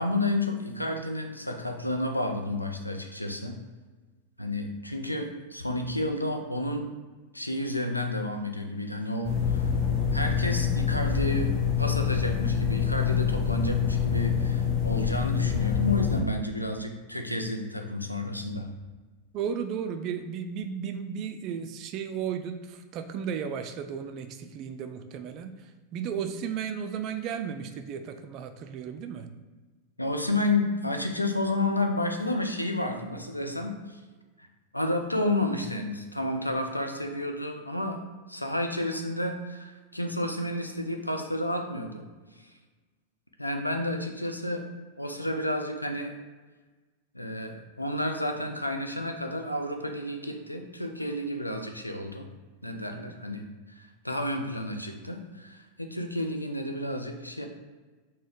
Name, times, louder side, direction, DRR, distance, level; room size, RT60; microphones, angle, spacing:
voice 1, 0.0-3.6 4.4-6.9 7.3-9.7 10.1-18.7 30.0-34.0 34.4-34.5 34.7-38.0 38.3-42.0 42.4-42.5 43.4-44.7 45.0-46.1 47.1-52.3 52.6-57.5, left 1 dB, 85° left, 4 dB, 0.4 m, -31 dB
sound 1, 9.2-16.2, left 7 dB, 45° left, 0.8 m, -26 dB
voice 2, 19.3-29.3, right 7 dB, 40° right, 7 dB, 0.3 m, -34 dB
4.1 x 2.1 x 4.4 m, 1.3 s
figure-of-eight pair, 90°, 0 cm